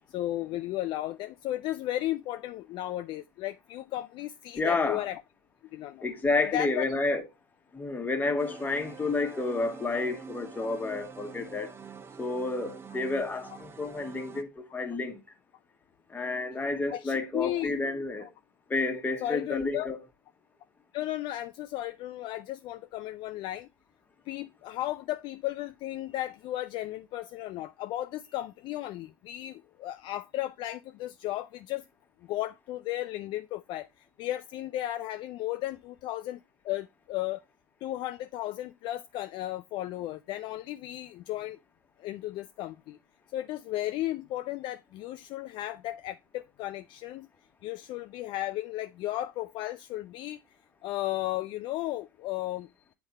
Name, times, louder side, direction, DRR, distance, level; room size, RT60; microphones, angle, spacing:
voice 1, 0.1-5.2 5.7-6.1 6.5-6.8 12.9-13.0 16.9-17.7 18.2-18.3 19.2-19.9 20.9-23.7 24.3-31.8 32.2-37.4 37.8-41.6 42.0-43.0 43.3-47.3 47.6-50.4 50.8-52.9, left 14 dB, 45° left, 0.4 m, -35 dB
voice 2, 4.6-5.1 6.0-7.2 7.7-11.7 12.2-15.2 16.1-18.3 18.7-20.0, left 3 dB, 15° left, 1.4 m, -30 dB
sound 1, 8.4-14.4, right 5 dB, 20° right, 0.7 m, -46 dB
7.9 x 3.6 x 4.1 m
hypercardioid pair, 85°, 11 cm